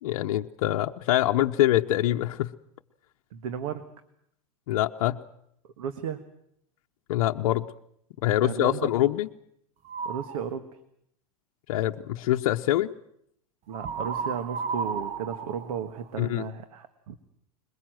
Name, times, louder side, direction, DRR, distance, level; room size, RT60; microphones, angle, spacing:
voice 1, 0.0-2.5 4.7-5.2 7.1-7.7 8.2-9.3 11.7-12.9 16.2-16.5, left 14 dB, 70° left, 5 dB, 0.8 m, -24 dB
voice 2, 3.3-3.9 5.8-6.2 8.4-8.9 10.0-10.7 13.7-17.2, right 7 dB, 70° right, 9 dB, 1.5 m, -34 dB
sound 1, 9.8-10.4 13.7-16.5, right 6 dB, 35° right, 1.1 m, -33 dB
21.5 x 21.5 x 7.8 m, 0.72 s
hypercardioid pair, 105°, 18 cm